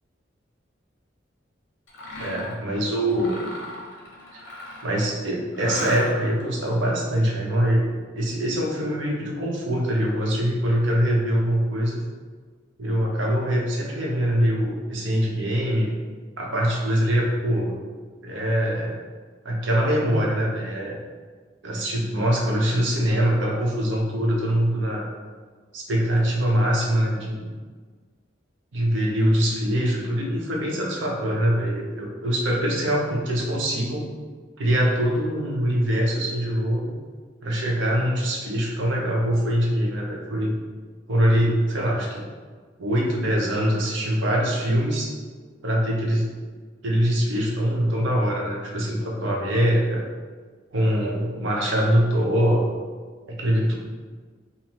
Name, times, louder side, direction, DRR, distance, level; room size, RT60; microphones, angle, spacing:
Mechanisms, 1.9-2.6 3.1-5.0 5.5-6.4, left 1 dB, 75° left, 0.8 m, -36 dB
voice 1, 2.2-3.4 4.3-4.4 4.8-12.0 12.8-15.9 16.4-17.8 18.2-19.0 19.4-21.0 21.6-25.0 25.7-27.5 28.7-34.0 34.6-36.9 37.4-40.6 41.1-42.2 42.8-45.1 45.6-46.3 46.8-50.0 50.7-52.7 53.3-53.7, equal, 80° right, -2 dB, 0.8 m, -23 dB
5.5 x 2.0 x 3.0 m, 1.5 s
head